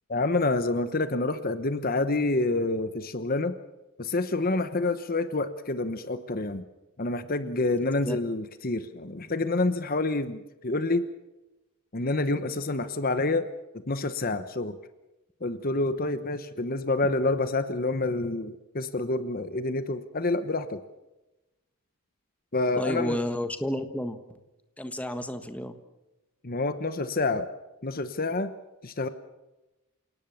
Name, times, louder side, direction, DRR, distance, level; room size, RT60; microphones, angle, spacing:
voice 1, 0.1-3.5 4.0-6.6 7.0-11.0 11.9-13.5 13.7-14.8 15.4-20.8 22.5-23.2 26.4-27.5 27.8-28.5 28.8-29.1, left 2 dB, 40° left, 11 dB, 1.1 m, -28 dB
voice 2, 22.7-24.4 24.8-25.7, left 1 dB, 5° left, 8 dB, 1.4 m, -31 dB
28.5 x 18.5 x 7.1 m, 1.0 s
head